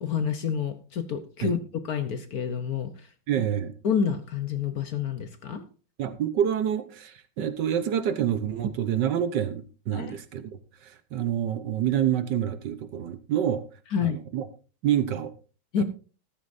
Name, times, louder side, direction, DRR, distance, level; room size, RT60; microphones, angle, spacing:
voice 1, 0.0-1.6 1.8-3.1 3.8-5.6 9.9-10.2 13.9-14.2 15.7-15.8, left 7 dB, 55° left, 1.2 m, -28 dB
voice 2, 3.3-3.7 6.0-10.6 11.1-13.6 14.0-14.4 14.8-15.3, right 9 dB, 65° right, 1.4 m, -27 dB
14.0 x 13.0 x 2.6 m
omnidirectional pair, 2.2 m